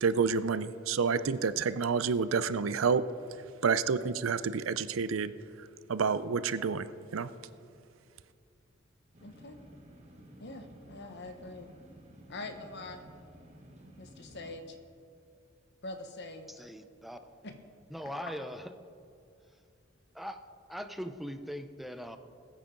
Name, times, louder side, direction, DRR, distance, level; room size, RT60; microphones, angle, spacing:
voice 1, 0.0-3.0 3.6-5.3 5.9-6.9 7.1-7.3, right 5 dB, 90° right, 14 dB, 0.5 m, -29 dB
sound 1, 9.1-14.5, equal, 35° right, 1.6 m, -54 dB
voice 2, 9.2-9.6 10.4-11.7 12.3-13.0 14.0-14.8 15.8-16.5 17.4-17.5 18.0-18.1, left 2 dB, 60° left, 6 dB, 1.2 m, -44 dB
voice 3, 16.6-17.2 17.9-18.6 20.1-20.4 20.7-22.2, equal, ahead, 8 dB, 0.5 m, -40 dB
20.5 x 9.1 x 3.8 m, 2.5 s
head